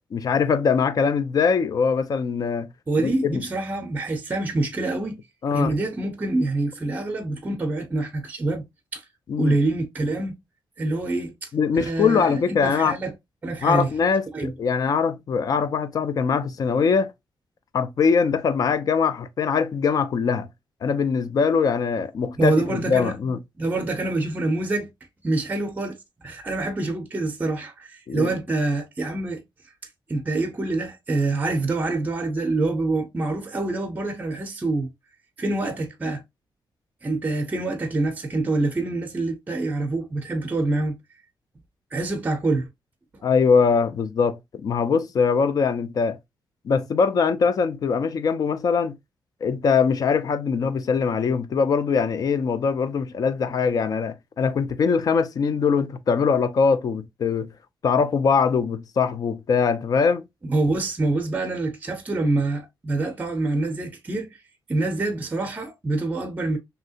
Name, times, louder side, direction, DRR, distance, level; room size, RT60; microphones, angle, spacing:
voice 1, 0.1-2.7 3.0-3.4 5.4-5.7 9.3-9.6 11.5-13.0 13.6-17.1 17.7-20.5 20.8-23.4 28.1-28.3 43.2-46.2 46.6-49.0 49.4-57.5 57.8-60.2, left 5 dB, 50° left, 0.4 m, -22 dB
voice 2, 2.9-5.2 5.5-8.6 8.9-9.0 9.4-10.4 10.8-11.5 11.8-13.1 13.4-13.9 14.3-14.5 22.4-23.1 23.6-24.9 25.2-29.4 30.1-34.9 35.4-36.2 37.0-41.0 41.9-42.7 60.4-64.3 64.7-66.6, right 2 dB, 20° right, 0.6 m, -26 dB
3.2 x 2.7 x 2.7 m
wide cardioid pair, 150°, 8 cm